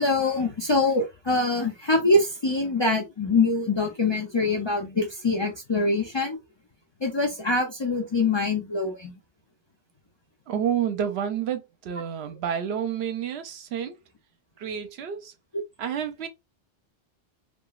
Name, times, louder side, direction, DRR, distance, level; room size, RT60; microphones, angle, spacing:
voice 1, 0.0-6.4 7.0-9.1, left 3 dB, 35° left, 0.4 m, -24 dB
voice 2, 10.5-14.0 14.6-15.3 15.8-16.3, right 8 dB, 75° right, 0.8 m, -29 dB
2.9 x 2.5 x 2.3 m
omnidirectional pair, 1.1 m